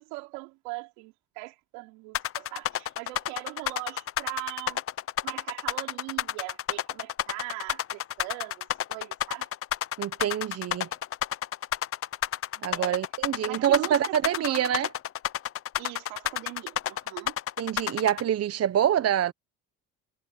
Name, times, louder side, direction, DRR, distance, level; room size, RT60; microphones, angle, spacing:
voice 1, 0.0-4.8 5.2-9.5 12.5-13.0 13.4-14.8 15.8-17.4, right 26 dB, 85° right, 4.5 m, -40 dB
sound 1, 2.1-18.2, left 11 dB, 40° left, 0.7 m, -30 dB
voice 2, 10.0-10.9 12.6-14.9 17.6-19.3, right 10 dB, 45° right, 1.1 m, -26 dB
supercardioid pair, 80°, 34 cm